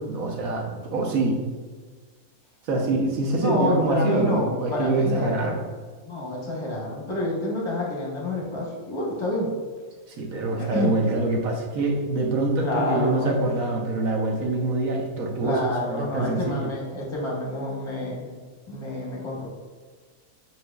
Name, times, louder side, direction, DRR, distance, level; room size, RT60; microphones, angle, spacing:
voice 1, 0.0-1.4 2.7-5.6 10.1-16.7, right 2 dB, 75° right, 0 dB, 1.2 m, -25 dB
voice 2, 3.4-5.6 6.0-9.5 10.6-11.0 12.6-13.4 15.4-18.4 18.7-19.5, left 1 dB, 25° left, -3 dB, 0.9 m, -28 dB
7.1 x 2.6 x 2.2 m, 1.5 s
omnidirectional pair, 1.5 m